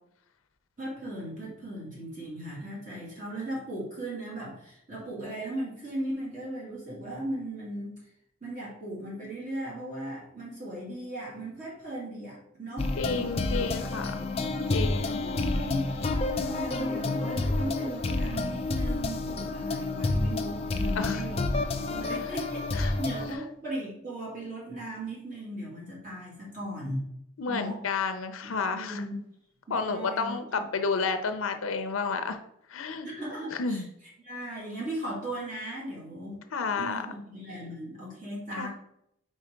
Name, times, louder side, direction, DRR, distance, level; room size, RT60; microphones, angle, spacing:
voice 1, 0.8-8.0 8.4-13.7 14.1-14.2 14.6-14.8 15.2-15.9 16.2-27.1 27.5-27.8 28.7-29.1 29.7-30.6 33.0-33.8 34.2-36.4 36.8-38.7, right 1 dB, 40° right, -6 dB, 2.1 m, -37 dB
sound 1, 12.8-23.3, left 2 dB, 30° left, 0.4 m, -29 dB
voice 2, 13.0-14.2 14.7-15.2 21.0-21.2 22.7-23.0 27.4-29.0 29.7-32.4 32.7-33.1 33.5-33.8 36.5-37.1 38.6-38.7, left 4 dB, 80° left, 8 dB, 0.5 m, -31 dB
4.5 x 4.4 x 5.0 m, 0.76 s
head